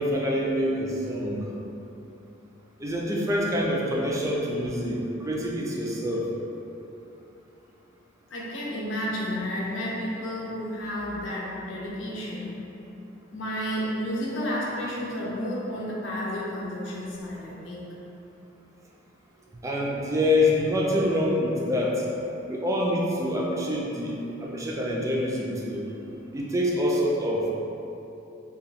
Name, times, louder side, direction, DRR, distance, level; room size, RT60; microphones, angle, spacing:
voice 1, 0.0-1.5 2.8-6.3 19.6-22.0 22.5-24.1 24.4-25.8 26.3-27.5, left 1 dB, 15° right, -3 dB, 0.4 m, -26 dB
voice 2, 8.3-12.5 13.3-17.9, equal, 85° left, -5 dB, 0.7 m, -31 dB
2.8 x 2.3 x 4.0 m, 3.0 s
head